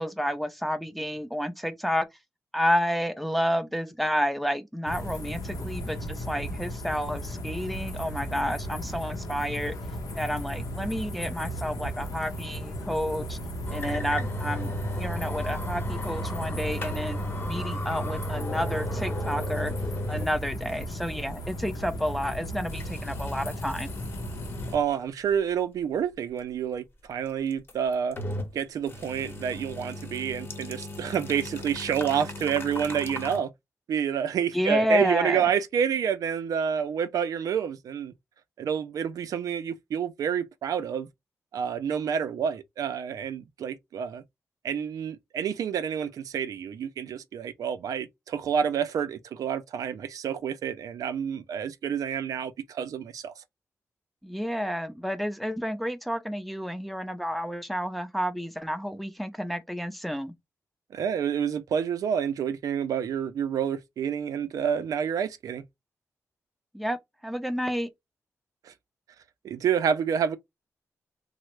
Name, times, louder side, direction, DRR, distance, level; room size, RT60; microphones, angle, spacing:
voice 1, 0.0-2.1 2.5-9.7 10.2-13.4 13.7-14.7 15.0-19.7 20.1-23.9 34.5-35.4 54.2-60.3 66.7-67.0 67.2-67.9, equal, ahead, 0.5 m, -30 dB
sound 1, 4.9-24.8, equal, 90° left, 0.7 m, -36 dB
sound 2, 13.6-20.3 20.7-20.8 21.5-21.6 22.7-24.8 25.3-25.4 27.5-28.6 28.9-33.4, equal, 40° left, 0.9 m, -35 dB
voice 2, 24.7-28.2 28.5-33.5 33.9-38.1 38.6-41.1 41.5-44.2 44.6-53.4 60.9-65.6 68.6-68.7 69.4-70.4, right 8 dB, 90° right, 0.4 m, -28 dB
3.2 x 2.0 x 3.0 m
wide cardioid pair, 110°, 6 cm